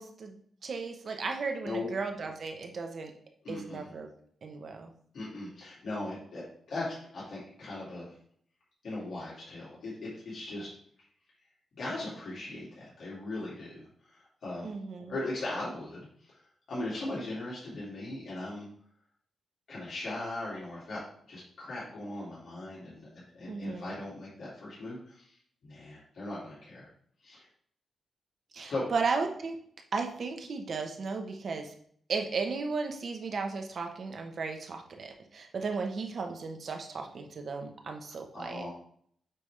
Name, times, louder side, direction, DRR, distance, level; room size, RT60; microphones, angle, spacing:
voice 1, 0.0-3.1 3.5-4.1 4.4-4.9 14.6-15.1 23.5-24.0 28.5-29.6 29.9-31.7 32.1-38.7, right 4 dB, 50° right, 4 dB, 0.9 m, -35 dB
voice 2, 3.4-3.9 5.1-8.0 8.8-10.7 11.8-13.7 14.1-14.7 15.1-16.1 16.7-18.7 19.7-21.0 21.3-23.1 23.3-25.2 25.6-26.9 27.2-27.4 28.7-28.8 38.3-38.7, left 2 dB, 65° left, -8 dB, 2.7 m, -38 dB
8.6 x 3.5 x 3.4 m, 0.62 s
wide cardioid pair, 125°, 0 cm